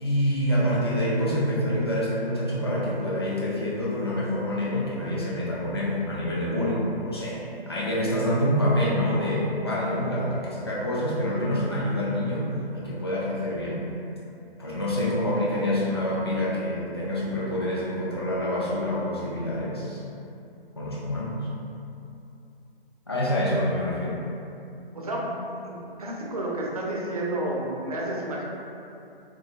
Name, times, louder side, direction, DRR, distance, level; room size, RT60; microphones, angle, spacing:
voice 1, 0.0-12.5 12.7-13.8 14.6-20.0 20.8-21.3 23.1-24.2, equal, 25° left, -6 dB, 0.3 m, -26 dB
voice 2, 24.9-25.3 25.6-28.4, right 1 dB, 40° right, -3 dB, 0.4 m, -30 dB
3.7 x 2.3 x 2.4 m, 2.7 s
figure-of-eight pair, 140°, 31 cm